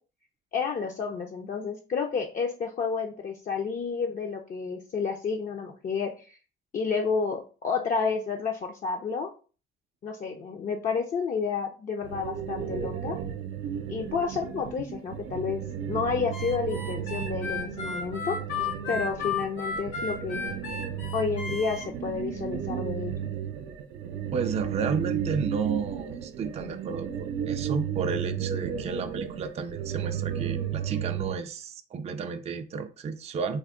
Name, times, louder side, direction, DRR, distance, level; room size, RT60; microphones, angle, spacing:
voice 1, 0.5-6.4 6.7-9.3 10.0-13.2 13.9-18.4 18.9-20.4 21.1-23.2, left 5 dB, 45° left, 0.5 m, -30 dB
sound 1, 12.0-31.4, right 9 dB, 85° right, 0.5 m, -34 dB
Harmonica, 16.3-21.9, left 5 dB, 80° left, 1.4 m, -34 dB
voice 2, 24.3-33.6, right 5 dB, 35° right, 0.3 m, -32 dB
3.4 x 2.1 x 3.6 m
cardioid pair, 90°, 20 cm